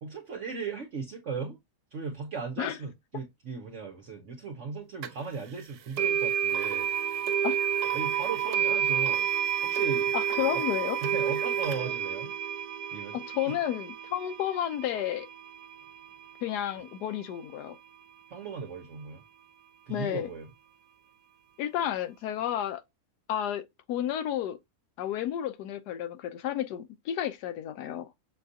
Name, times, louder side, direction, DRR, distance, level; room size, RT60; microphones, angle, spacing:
voice 1, 0.0-1.6 1.9-6.9 7.9-9.3 9.6-10.1 10.5-10.6 11.0-12.3 12.9-13.2 13.5-13.6 18.3-19.2 19.9-20.5, right 5 dB, 55° right, 1.0 m, -37 dB
sound 1, 5.0-5.1 6.0-17.0, right 9 dB, 80° right, 1.1 m, -30 dB
voice 2, 10.1-11.0 13.1-15.3 16.4-17.8 19.9-20.3 21.6-22.8 23.3-23.6 23.9-24.6 25.0-28.1, left 11 dB, 85° left, 1.2 m, -31 dB
6.6 x 2.3 x 2.6 m
omnidirectional pair, 1.7 m